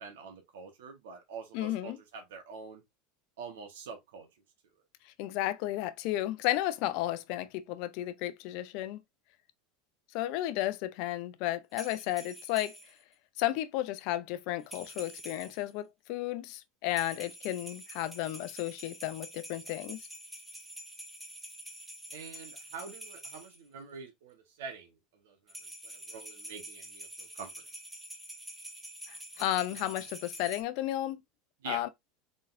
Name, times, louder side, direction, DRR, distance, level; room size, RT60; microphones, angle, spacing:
voice 1, 0.0-2.8 3.4-4.3 22.1-27.5 31.6-31.8, right 5 dB, 80° right, 1.2 m, -46 dB
voice 2, 1.5-2.0 5.2-9.0 10.1-12.8 13.4-20.0 29.1-31.2 31.7-31.9, left 14 dB, 60° left, 0.6 m, -33 dB
sound 1, 11.7-13.0 14.6-15.7 16.9-23.6 25.5-30.6, right 1 dB, 10° right, 1.6 m, -47 dB
3.9 x 3.9 x 2.6 m
hypercardioid pair, 95°, 0 cm